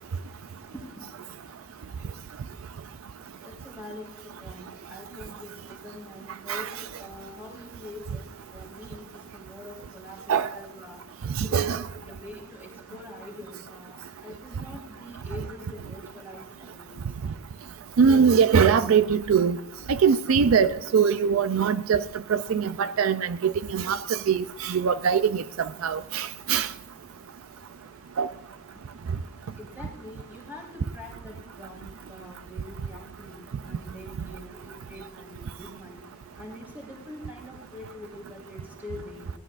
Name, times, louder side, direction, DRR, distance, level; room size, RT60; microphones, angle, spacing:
voice 1, 0.7-1.0 3.2-11.0 11.4-11.7 12.0-17.2 29.6-36.0 36.4-39.3, left 1 dB, 10° right, 4.1 m, -44 dB
voice 2, 11.4-11.8 18.0-19.6 19.9-22.0 22.3-25.4 25.8-26.7 28.2-28.3, right 6 dB, 75° right, 0.4 m, -22 dB
21.0 x 17.5 x 2.5 m
head